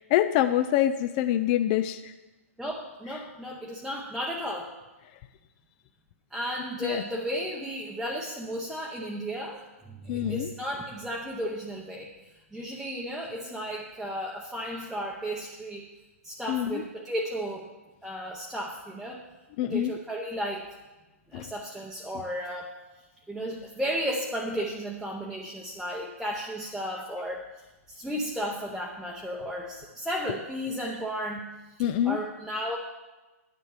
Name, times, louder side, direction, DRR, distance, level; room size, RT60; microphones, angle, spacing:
voice 1, 0.0-2.1 6.8-7.0 10.1-10.5 16.5-16.8 19.6-19.9 21.3-21.5 31.8-32.2, left 12 dB, 30° left, 10 dB, 0.4 m, -25 dB
voice 2, 2.6-4.7 6.3-12.1 12.5-15.9 16.2-17.7 18.0-19.3 19.6-20.7 21.3-22.8 23.3-27.5 27.9-31.5 31.8-32.8, equal, ahead, -2 dB, 0.8 m, -34 dB
11.0 x 9.9 x 4.9 m, 1.1 s
hypercardioid pair, 155°, 8 cm